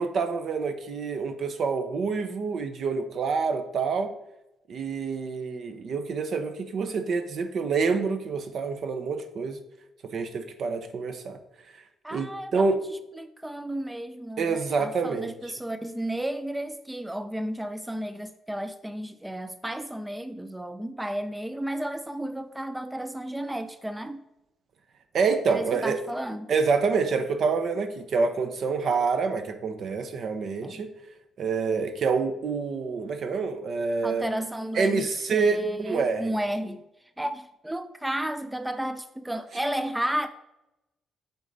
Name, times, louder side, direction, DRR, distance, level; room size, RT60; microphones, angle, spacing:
voice 1, 0.0-4.1 4.7-9.6 10.1-11.4 12.1-12.8 14.4-15.3 25.1-26.0 26.5-30.9 31.4-34.3 34.7-36.3, right 4 dB, 60° right, 0.8 m, -27 dB
voice 2, 12.0-12.8 13.2-24.2 25.5-26.5 30.6-30.8 34.0-36.9 37.2-40.3, right 1 dB, 10° right, 0.4 m, -33 dB
8.1 x 4.0 x 4.0 m
cardioid pair, 90°, 0 cm